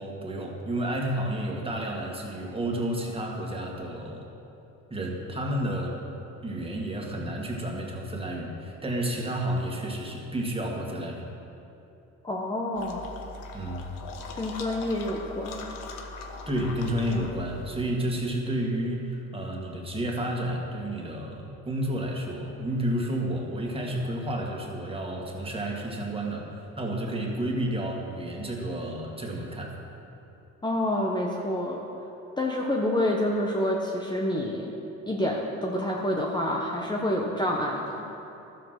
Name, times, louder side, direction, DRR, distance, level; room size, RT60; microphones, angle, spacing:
voice 1, 0.0-4.3 4.9-6.0 6.4-11.3 13.5-13.9 16.5-29.8, right 1 dB, 15° right, -1 dB, 2.1 m, -31 dB
voice 2, 12.2-13.1 14.4-15.7 30.6-31.8 32.4-34.7 35.1-38.0, left 1 dB, 15° left, -2 dB, 1.1 m, -28 dB
sound 1, 12.8-17.9, left 3 dB, 75° left, 1.2 m, -40 dB
12.5 x 7.7 x 5.9 m, 2.8 s
supercardioid pair, 90°, 33 cm